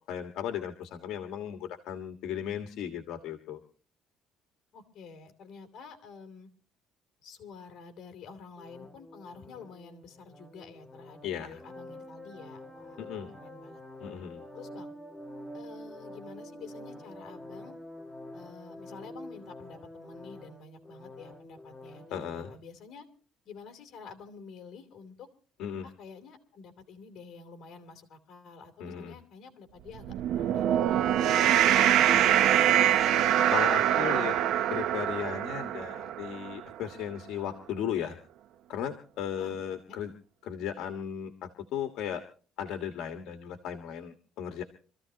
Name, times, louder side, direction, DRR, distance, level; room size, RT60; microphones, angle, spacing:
voice 1, 0.1-3.6 11.2-11.6 13.0-13.3 14.0-14.4 22.1-22.5 25.6-25.9 28.8-29.1 32.1-32.3 33.5-34.3 34.7-38.2 38.7-40.1 40.4-42.2 42.6-44.6, left 9 dB, 60° left, 6 dB, 1.6 m, -36 dB
voice 2, 4.7-6.5 7.2-13.1 13.4-13.8 14.5-14.9 15.5-17.8 18.3-23.0 23.4-25.3 25.8-30.8 31.0-32.4 39.4-39.6 39.9-40.0, left 5 dB, 40° left, 6 dB, 3.3 m, -49 dB
sound 1, 8.6-22.5, left 1 dB, ahead, 1.7 m, -47 dB
sound 2, 30.0-36.5, right 11 dB, 60° right, 0.6 m, -24 dB
26.5 x 14.5 x 2.9 m, 0.40 s
cardioid pair, 175°, 0 cm